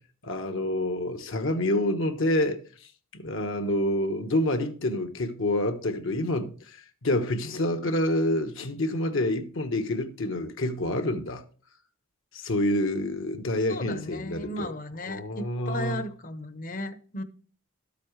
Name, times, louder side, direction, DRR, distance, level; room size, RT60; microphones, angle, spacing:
voice 1, 0.2-2.6 3.2-6.8 7.0-11.4 12.3-14.7 15.0-16.0, left 1 dB, 65° left, 1.1 m, -27 dB
voice 2, 13.7-17.2, left 1 dB, 40° left, 0.9 m, -35 dB
13.0 x 8.4 x 3.2 m
head